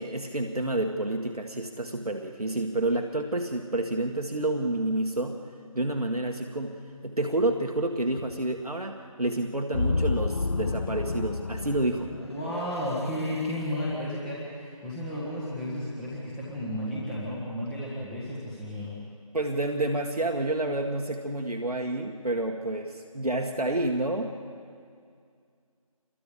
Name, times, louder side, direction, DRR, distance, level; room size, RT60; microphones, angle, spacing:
voice 1, 0.0-5.5 5.7-12.1 19.3-24.4, right 2 dB, 80° right, 3 dB, 1.9 m, -29 dB
sound 1, 9.7-13.0, left 3 dB, 45° left, 0.5 m, -30 dB
voice 2, 12.2-18.9, left 1 dB, 5° left, -7 dB, 1.5 m, -33 dB
28.0 x 23.0 x 5.1 m, 2.3 s
figure-of-eight pair, 165°, 19 cm